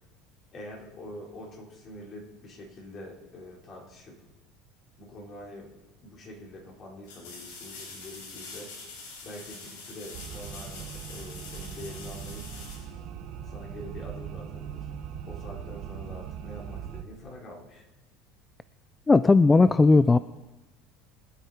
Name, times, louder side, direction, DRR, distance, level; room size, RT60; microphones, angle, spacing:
voice 1, 0.5-4.2 5.0-5.7 6.0-8.7 9.2-12.5 13.4-14.9 15.2-17.9, left 1 dB, 40° left, -2 dB, 4.6 m, -45 dB
sound 1, 5.7-5.8 7.0-13.6 16.5-16.6, left 4 dB, 85° left, 5.4 m, -45 dB
sound 2, 10.1-17.0, right 9 dB, 55° right, 1.6 m, -40 dB
voice 2, 19.1-20.2, left 3 dB, 15° left, 15 dB, 0.4 m, -17 dB
24.0 x 9.2 x 4.4 m, 1.1 s
supercardioid pair, 110°, 0 cm